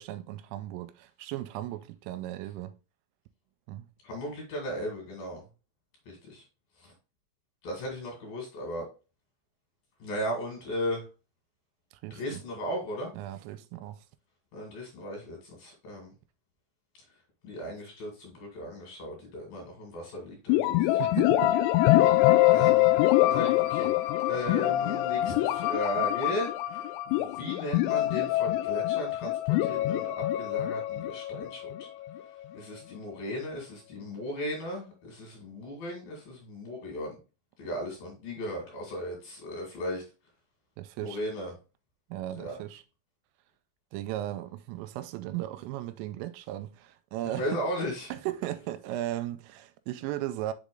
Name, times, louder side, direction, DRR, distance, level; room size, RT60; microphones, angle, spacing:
voice 1, 0.0-2.7 3.7-3.9 12.0-12.4 13.1-14.0 21.0-21.5 40.8-41.2 42.1-42.8 43.9-47.6 48.1-50.5, right 14 dB, 85° right, 3.1 m, -36 dB
voice 2, 4.0-5.4 6.1-6.4 6.8-6.9 7.6-8.9 10.0-11.0 12.1-13.1 14.5-16.1 17.4-21.0 22.0-22.1 22.5-22.9 23.3-23.9 24.2-31.9 32.5-37.2 37.6-40.0 41.0-41.5 42.3-42.6 47.2-48.1, equal, 55° left, 3.2 m, -36 dB
Ode To John Carradine, 20.5-32.2, left 15 dB, 90° left, 2.6 m, -25 dB
6.8 x 4.1 x 3.7 m
omnidirectional pair, 5.8 m